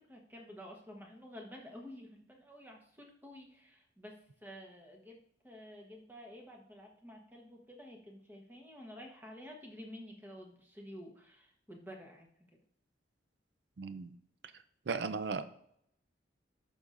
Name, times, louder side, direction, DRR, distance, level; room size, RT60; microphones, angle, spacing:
voice 1, 0.0-5.2 5.4-12.3, equal, 10° right, 1 dB, 1.1 m, -51 dB
voice 2, 13.8-14.1 14.9-15.4, right 4 dB, 60° right, 11 dB, 0.4 m, -36 dB
11.5 x 5.4 x 2.5 m, 0.69 s
head